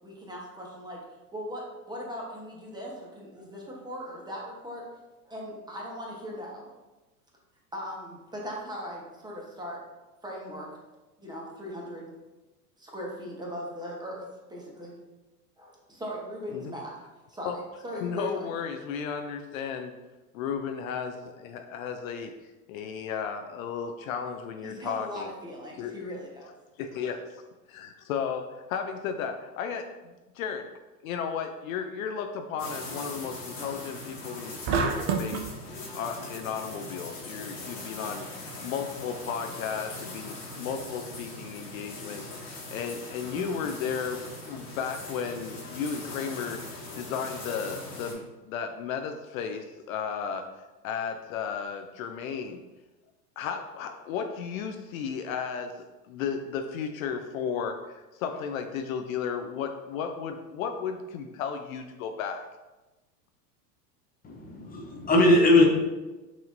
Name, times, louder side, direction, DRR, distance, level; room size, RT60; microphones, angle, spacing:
voice 1, 0.0-1.0 1.3-4.9 5.3-6.7 7.7-9.8 10.2-10.7 11.2-12.1 12.8-14.9 15.6-16.9 17.3-18.5 24.6-26.5 27.0-27.2, equal, 10° right, -3 dB, 1.0 m, -39 dB
voice 2, 18.0-19.9 20.3-25.3 25.8-25.9 26.8-27.2 27.7-30.7 31.0-35.5 35.9-52.6 53.4-62.5, left 6 dB, 60° left, 6 dB, 0.5 m, -34 dB
sound 1, 32.6-48.1, left 2 dB, 85° left, 1.5 m, -41 dB
sound 2, 34.7-35.5, right 5 dB, 30° right, 0.4 m, -27 dB
voice 3, 64.2-65.6, left 1 dB, 20° left, -1 dB, 0.7 m, -20 dB
6.0 x 2.8 x 2.6 m, 1.1 s
hypercardioid pair, 90°, 48 cm